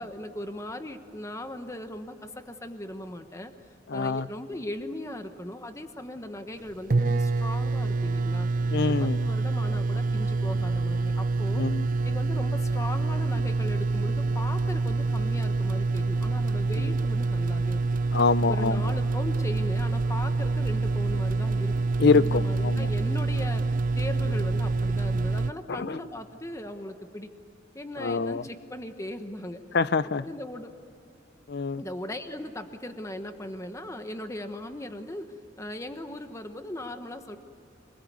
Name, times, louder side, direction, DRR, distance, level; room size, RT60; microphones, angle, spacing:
voice 1, 0.0-3.5 3.9-8.5 9.0-11.6 12.0-17.8 18.5-21.7 22.1-27.3 27.7-29.6 30.2-30.7 31.8-35.3 35.6-37.4, left 1 dB, 15° left, 1.2 m, -38 dB
voice 2, 3.9-4.2 8.7-9.2 11.6-11.8 18.1-18.8 22.0-22.9 25.7-26.0 28.0-28.4 29.7-30.2 31.5-31.8, left 4 dB, 55° left, 0.6 m, -25 dB
sound 1, 6.6-6.7 6.9-25.5, right 3 dB, 45° right, 0.5 m, -26 dB
27.0 x 20.5 x 9.4 m
head